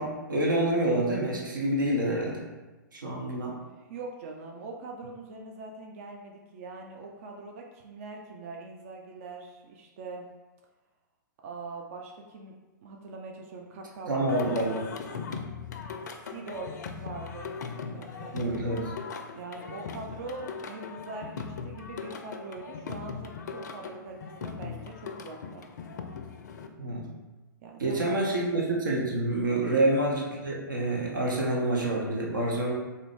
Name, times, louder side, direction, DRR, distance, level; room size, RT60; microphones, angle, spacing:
voice 1, 0.0-2.4 2.9-3.6 14.1-14.7 18.3-18.9 26.8-27.1 27.8-32.7, right 1 dB, 70° right, -2 dB, 0.8 m, -27 dB
voice 2, 3.8-10.3 11.4-12.5 12.8-14.7 16.3-18.4 19.3-25.6 27.6-28.2 29.5-29.7, right 3 dB, 40° right, 1 dB, 0.4 m, -42 dB
Singing, 14.3-26.7, left 5 dB, 55° left, 0.4 m, -39 dB
3.5 x 2.7 x 3.5 m, 1.2 s
figure-of-eight pair, 110°, 11 cm